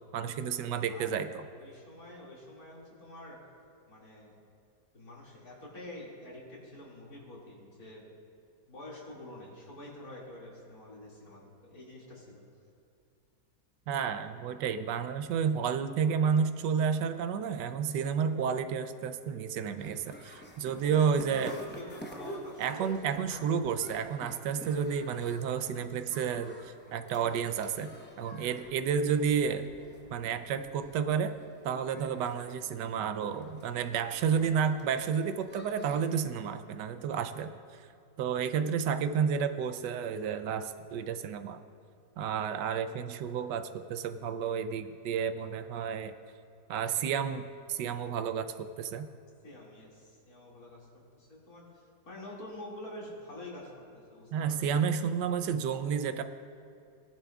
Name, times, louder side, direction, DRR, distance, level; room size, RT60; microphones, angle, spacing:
voice 1, 0.1-1.4 13.9-21.6 22.6-27.9 28.2-29.7 30.1-31.4 31.6-37.6 38.2-41.6 42.2-46.1 46.7-49.1 54.3-56.2, right 7 dB, 85° right, 9 dB, 1.2 m, -31 dB
voice 2, 0.9-3.4 3.9-4.4 4.9-8.1 8.7-12.4 20.7-23.5 29.1-29.2 34.4-34.7 49.4-50.9 51.1-54.9, left 1 dB, 60° left, -5 dB, 2.8 m, -47 dB
sound 1, 19.8-36.5, equal, 10° left, 0.6 m, -49 dB
19.0 x 10.5 x 2.4 m, 2.5 s
omnidirectional pair, 1.8 m